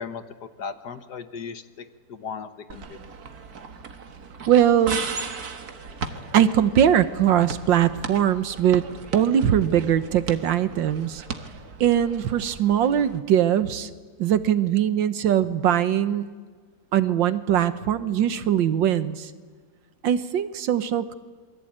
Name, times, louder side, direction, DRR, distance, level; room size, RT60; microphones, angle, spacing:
voice 1, 0.0-3.1, left 6 dB, 60° left, 11 dB, 1.5 m, -37 dB
sound 1, 2.7-13.2, right 5 dB, 50° right, 1.9 m, -37 dB
voice 2, 4.5-5.0 6.3-8.8 9.1-11.2 11.8-13.9 14.2-16.3 16.9-19.3 20.0-21.1, right 10 dB, 70° right, 13 dB, 1.6 m, -21 dB
27.5 x 23.0 x 8.8 m, 1.5 s
omnidirectional pair, 2.2 m